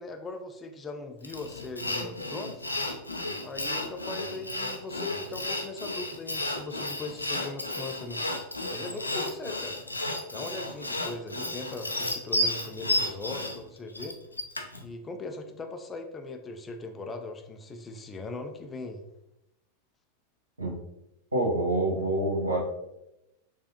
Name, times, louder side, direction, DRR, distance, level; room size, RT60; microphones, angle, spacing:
voice 1, 0.0-2.6 3.4-8.2 8.7-9.8 10.3-14.2 14.8-19.0, left 3 dB, 15° left, 5 dB, 0.5 m, -39 dB
Sawing, 1.2-14.8, left 1 dB, 85° left, 0.5 m, -32 dB
voice 2, 21.3-22.6, right 1 dB, 80° right, -2 dB, 1.3 m, -26 dB
6.7 x 2.5 x 2.8 m, 0.89 s
figure-of-eight pair, 90°, 0 cm